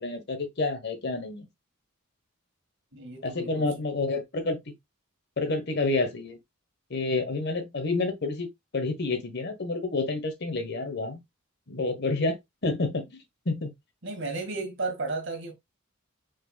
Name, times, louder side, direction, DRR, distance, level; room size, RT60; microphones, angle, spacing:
voice 1, 0.0-1.5 3.2-4.6 5.4-6.4 6.9-8.5 8.7-11.2 11.7-13.0 13.4-13.7, left 3 dB, 55° left, 1.2 m, -29 dB
voice 2, 2.9-3.6 14.0-15.5, right 3 dB, 60° right, 1.7 m, -33 dB
5.0 x 4.6 x 2.2 m
head